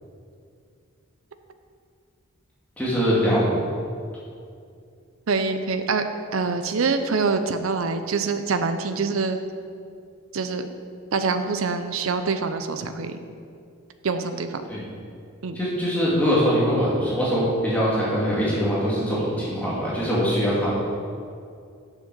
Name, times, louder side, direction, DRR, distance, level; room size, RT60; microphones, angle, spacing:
voice 1, 2.8-3.5 14.7-14.8 15.5-20.7, equal, 5° left, -8 dB, 2.1 m, -22 dB
voice 2, 5.3-6.1 6.3-9.4 10.3-10.7 11.1-13.2 14.0-14.6 15.4-15.6, right 4 dB, 75° right, 8 dB, 0.6 m, -25 dB
7.2 x 6.7 x 6.2 m, 2.4 s
head